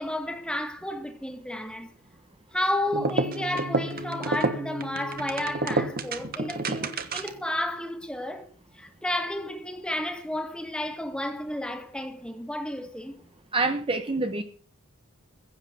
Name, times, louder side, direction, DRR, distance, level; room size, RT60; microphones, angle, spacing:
voice 1, 0.0-1.9 2.5-8.5 8.8-13.2, left 1 dB, 5° left, 2.1 m, -32 dB
sound 1, 2.9-7.5, right 2 dB, 45° right, 1.4 m, -29 dB
voice 2, 13.5-14.4, right 3 dB, 25° right, 1.0 m, -26 dB
16.0 x 8.2 x 7.1 m
head